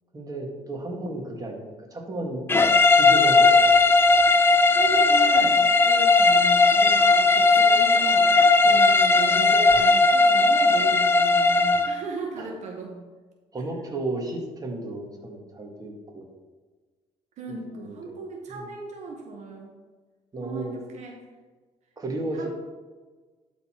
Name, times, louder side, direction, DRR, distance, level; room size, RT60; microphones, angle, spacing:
voice 1, 0.1-2.4 3.0-3.8 12.4-12.5 13.5-16.3 17.7-18.2 18.5-18.7 20.3-20.8 22.0-22.5, right 2 dB, 30° right, 1 dB, 1.8 m, -33 dB
sound 1, 2.5-12.0, left 3 dB, 15° left, 0.5 m, -18 dB
voice 2, 4.7-13.0 17.4-19.8 20.4-21.2 22.3-22.5, right 3 dB, 65° right, 1 dB, 1.2 m, -36 dB
12.0 x 4.2 x 4.4 m, 1.4 s
cardioid pair, 100°, 13 cm